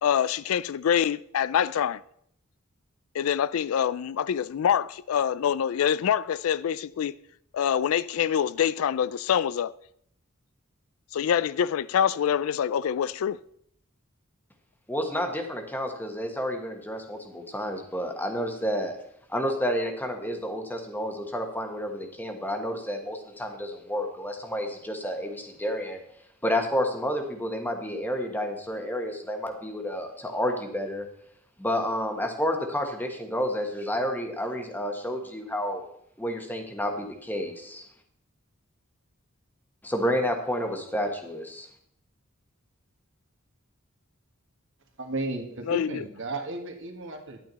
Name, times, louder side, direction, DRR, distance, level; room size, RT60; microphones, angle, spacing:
voice 1, 0.0-2.0 3.1-7.1 7.5-9.7 11.1-13.4 45.7-46.0, left 8 dB, 80° left, 0.4 m, -25 dB
voice 2, 14.9-19.0 19.3-26.0 26.4-31.1 31.6-35.8 36.2-37.8 39.8-41.7, equal, 10° left, 1.3 m, -30 dB
voice 3, 45.0-47.4, right 2 dB, 65° right, 1.7 m, -34 dB
10.5 x 9.1 x 4.0 m
head